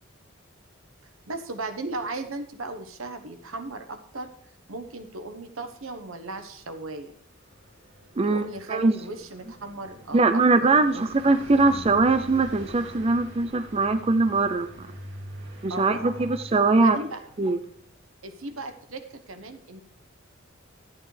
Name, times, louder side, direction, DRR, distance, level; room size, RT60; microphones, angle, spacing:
voice 1, 1.3-4.3 4.7-7.1 8.2-11.0 15.7-16.4 16.7-17.2 18.2-19.8, right 2 dB, 80° right, 8 dB, 1.2 m, -36 dB
Car passing by, 6.8-17.8, equal, 65° right, 2.2 m, -44 dB
voice 2, 8.2-8.9 10.1-14.7 15.6-17.0 17.4-17.6, right 3 dB, 30° right, 9 dB, 0.4 m, -21 dB
13.0 x 8.9 x 3.3 m, 0.68 s
head